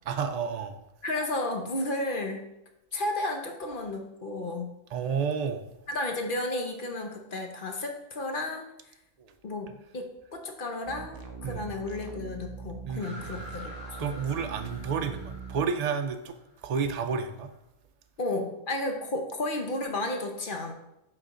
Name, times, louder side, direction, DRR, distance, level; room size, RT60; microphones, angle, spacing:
voice 1, 0.1-0.8 4.9-5.6 9.2-9.3 11.4-11.7 12.9-13.5 14.0-16.4 16.6-17.5, right 6 dB, 90° right, 6 dB, 0.3 m, -31 dB
voice 2, 1.0-2.5 2.9-4.7 5.9-8.6 9.4-14.1 18.2-20.7, left 2 dB, 45° left, 3 dB, 0.9 m, -33 dB
sound 1, 10.8-15.7, right 5 dB, 25° right, 0.5 m, -42 dB
sound 2, 13.0-17.5, left 1 dB, 5° right, 2.1 m, -47 dB
6.4 x 3.9 x 5.1 m, 0.88 s
omnidirectional pair, 1.4 m